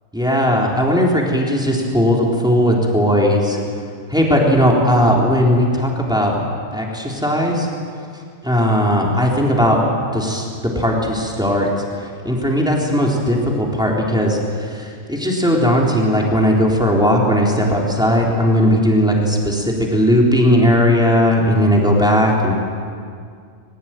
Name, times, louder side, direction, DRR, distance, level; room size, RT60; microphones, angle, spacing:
voice 1, 0.1-3.6 4.1-6.3 6.7-7.7 8.4-9.8 10.1-11.7 12.2-22.5, equal, 5° right, -2 dB, 3.9 m, -17 dB
22.0 x 20.5 x 9.1 m, 2.2 s
omnidirectional pair, 1.4 m